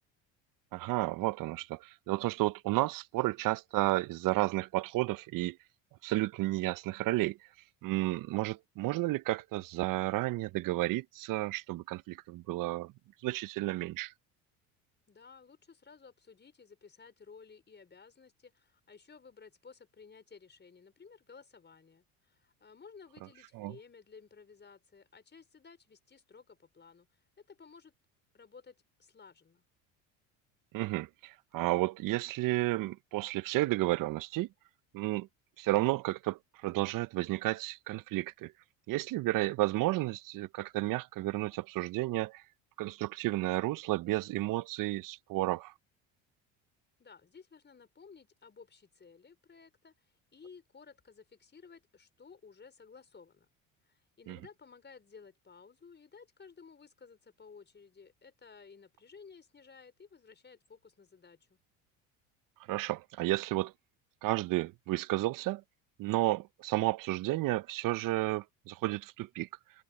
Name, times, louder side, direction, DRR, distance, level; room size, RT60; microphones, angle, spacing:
voice 1, 0.7-5.6 6.0-7.4 7.8-12.9 13.2-14.1 23.5-23.7 30.7-34.5 34.9-35.3 35.6-38.5 38.9-42.4 42.8-45.7 54.3-54.4 62.7-63.7 64.2-65.6 66.0-69.5, right 18 dB, 55° right, 0.8 m, -32 dB
voice 2, 15.1-27.1 27.4-27.9 28.3-29.6 47.0-53.5 53.9-61.6, left 5 dB, 25° left, 5.2 m, -55 dB
hypercardioid pair, 80°, 40 cm